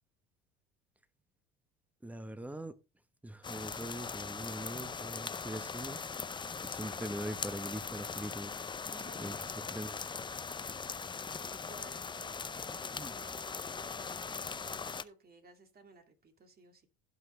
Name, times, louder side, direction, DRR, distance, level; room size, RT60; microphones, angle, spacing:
voice 1, 2.0-2.8 3.2-6.0 6.6-8.5 9.2-9.3 9.7-10.1 12.9-13.1, right 1 dB, 5° right, 1.1 m, -42 dB
sound 1, 3.4-15.0, left 5 dB, 15° left, 0.6 m, -40 dB
voice 2, 8.9-9.5 11.5-16.9, right 3 dB, 30° right, 2.4 m, -57 dB
16.5 x 5.9 x 3.3 m
supercardioid pair, 90°, 30 cm